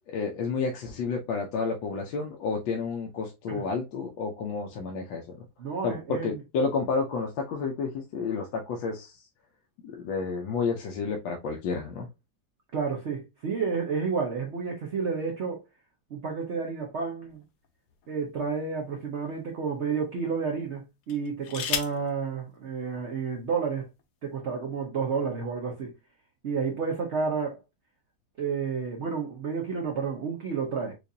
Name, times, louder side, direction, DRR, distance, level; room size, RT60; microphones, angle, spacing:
voice 1, 0.1-5.4 5.8-9.3 9.8-12.1, left 4 dB, 90° left, 1.4 m, -30 dB
voice 2, 5.6-6.4 12.7-15.6 16.1-17.4 18.1-23.9 24.2-25.9 26.4-27.6 28.4-30.9, right 5 dB, 60° right, 0.7 m, -30 dB
sound 1, 17.3-18.5 19.3-19.4 21.0-22.1 23.2-23.3 23.6-24.0, left 7 dB, 65° left, 0.9 m, -35 dB
4.8 x 2.5 x 2.6 m
omnidirectional pair, 2.0 m